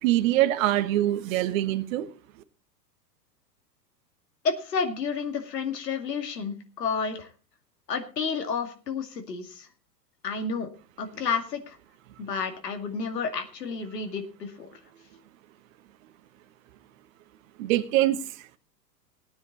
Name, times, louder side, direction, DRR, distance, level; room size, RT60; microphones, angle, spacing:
voice 1, 0.0-2.1 17.6-18.6, right 14 dB, 50° right, 9 dB, 1.3 m, -24 dB
voice 2, 4.4-7.3 7.9-9.7 10.2-10.7 11.0-11.8 12.2-14.7, left 5 dB, 75° left, 5 dB, 2.4 m, -30 dB
18.0 x 9.5 x 4.2 m, 0.36 s
hypercardioid pair, 105°, 49 cm